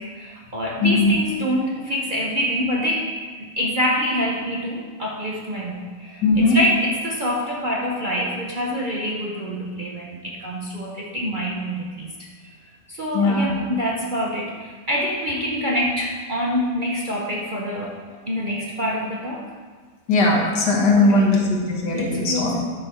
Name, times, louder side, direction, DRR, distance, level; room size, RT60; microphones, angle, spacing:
voice 1, 0.0-12.1 12.9-17.9 18.3-19.4 20.9-21.4 21.9-22.6, equal, 40° right, -4 dB, 0.8 m, -26 dB
voice 2, 0.8-1.1 6.2-6.6 13.1-13.5 20.1-22.6, left 2 dB, 75° left, -1 dB, 2.0 m, -19 dB
10.5 x 5.7 x 4.4 m, 1.5 s
omnidirectional pair, 1.8 m